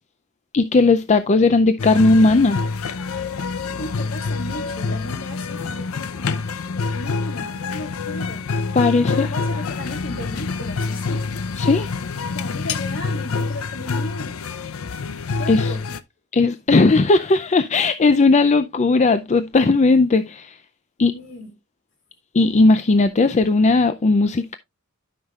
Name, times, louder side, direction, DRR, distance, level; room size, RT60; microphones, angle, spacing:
voice 1, 0.5-2.6 3.7-3.8 8.7-9.3 11.6-11.9 15.5-15.7 16.3-20.6 21.0-21.1 22.3-24.6, left 3 dB, 35° left, 0.5 m, -17 dB
sound 1, 1.8-16.0, left 4 dB, 85° left, 0.6 m, -26 dB
voice 2, 3.8-6.5 6.9-8.5 8.9-11.3 12.3-14.4 15.4-16.0 21.0-21.5, left 1 dB, 65° left, 3.1 m, -35 dB
12.5 x 5.7 x 2.4 m
head